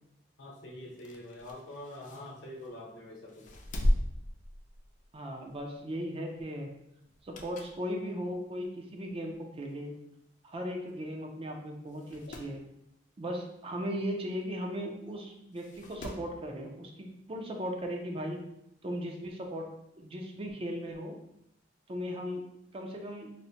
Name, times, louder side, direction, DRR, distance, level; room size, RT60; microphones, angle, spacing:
voice 1, 0.4-3.5, left 1 dB, 75° left, -1 dB, 0.8 m, -45 dB
sound 1, 0.9-2.8 3.3-5.2 5.5-5.7 7.0-7.9 8.3-8.4 9.3-9.4 9.6-9.7 9.9-10.0 10.9-11.1 11.4-11.5 11.9-12.6 14.4-14.5 15.5-16.4 17.7-17.8, equal, 45° left, 0.4 m, -35 dB
voice 2, 5.1-6.7 7.2-9.9 10.4-12.6 13.2-18.4 18.8-19.7 20.0-21.2 21.9-22.4 22.7-23.3, equal, 30° right, 2 dB, 0.4 m, -37 dB
4.2 x 2.1 x 2.7 m, 0.80 s
head